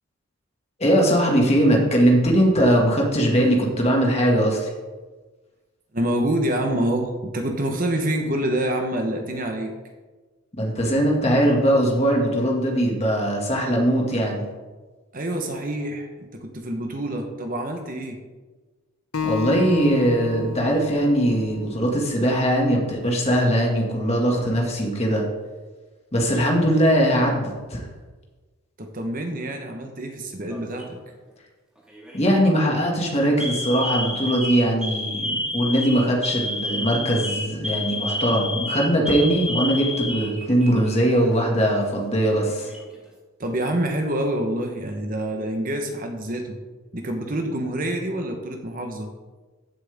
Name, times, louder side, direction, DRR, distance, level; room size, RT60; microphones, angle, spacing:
voice 1, 0.8-4.7 10.5-14.5 19.2-25.2 26.1-27.8 32.1-42.7, equal, 30° left, 0 dB, 2.0 m, -20 dB
voice 2, 5.9-9.7 15.1-18.2 28.8-31.0 43.4-46.6 46.9-49.1, right 1 dB, 40° right, 4 dB, 1.1 m, -27 dB
Acoustic guitar, 19.1-22.4, left 6 dB, 80° left, 0.7 m, -31 dB
Alarm, 30.5-31.0 31.9-32.2 32.6-32.8 33.4-40.9 41.2-41.4 42.3-43.0, left 1 dB, 5° right, 1.9 m, -29 dB
15.0 x 7.8 x 3.6 m, 1.3 s
head